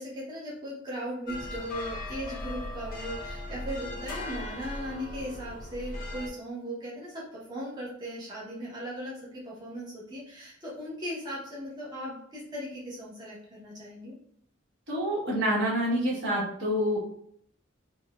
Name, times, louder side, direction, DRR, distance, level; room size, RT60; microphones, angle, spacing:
voice 1, 0.0-14.1, equal, 20° right, -8 dB, 0.9 m, -38 dB
sound 1, 1.3-6.3, left 1 dB, 45° left, 0.8 m, -38 dB
voice 2, 14.9-17.1, equal, 60° right, -6 dB, 1.3 m, -27 dB
3.8 x 2.1 x 2.3 m, 0.67 s
head